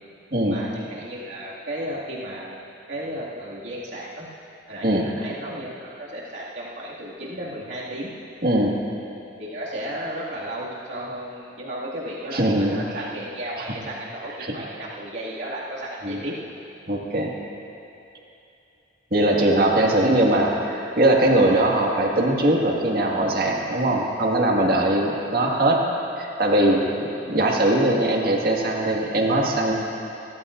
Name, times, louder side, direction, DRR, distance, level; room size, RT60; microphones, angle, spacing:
voice 1, 0.5-4.3 4.7-8.1 9.4-16.3, right 1 dB, 70° right, -7 dB, 2.3 m, -34 dB
voice 2, 8.4-8.8 12.3-12.8 14.4-14.6 16.0-16.2 16.9-17.3 19.1-25.9 26.2-29.7, right 1 dB, 55° right, -1 dB, 1.9 m, -21 dB
30.0 x 14.0 x 2.6 m, 2.8 s
head